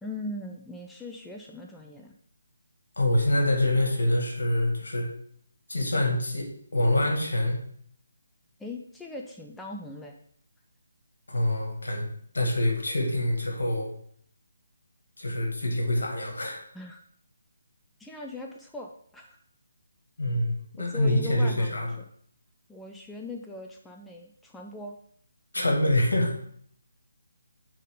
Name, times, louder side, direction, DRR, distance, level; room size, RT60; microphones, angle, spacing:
voice 1, 0.0-2.1 8.6-10.2 16.7-17.0 18.0-19.4 20.8-22.0 22.7-25.0, left 2 dB, 5° left, 0 dB, 0.4 m, -40 dB
voice 2, 3.0-5.1 5.7-7.6 11.3-12.1 12.3-13.9 15.2-16.6 20.2-21.9 25.5-26.4, left 1 dB, 70° left, 2 dB, 1.9 m, -25 dB
9.1 x 3.7 x 3.6 m, 0.63 s
figure-of-eight pair, 150°, 0 cm